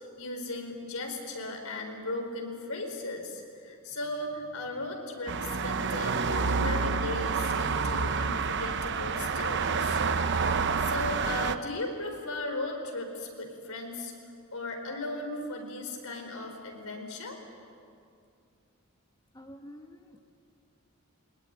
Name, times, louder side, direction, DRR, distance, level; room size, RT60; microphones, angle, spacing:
voice 1, 0.0-10.0 10.8-14.1 14.5-17.4, left 2 dB, 85° left, 3 dB, 4.5 m, -37 dB
sound 1, 5.3-11.6, right 5 dB, 55° right, 0.8 m, -28 dB
voice 2, 19.3-20.3, equal, 20° left, 4 dB, 1.1 m, -49 dB
22.0 x 20.5 x 8.8 m, 2.4 s
head